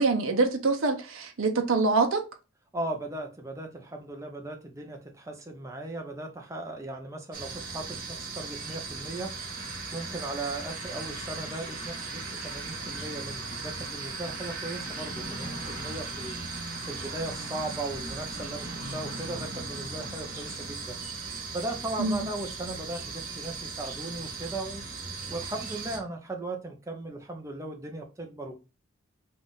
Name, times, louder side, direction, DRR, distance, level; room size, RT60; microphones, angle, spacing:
voice 1, 0.0-2.2 22.0-22.3, right 3 dB, 75° right, 0.7 m, -25 dB
voice 2, 2.7-9.4 9.9-16.4 16.8-21.0 21.5-24.8 25.3-28.5, right 2 dB, 15° right, 0.6 m, -37 dB
sound 1, 7.3-26.0, right 3 dB, 40° right, 1.0 m, -37 dB
3.8 x 2.4 x 3.8 m
head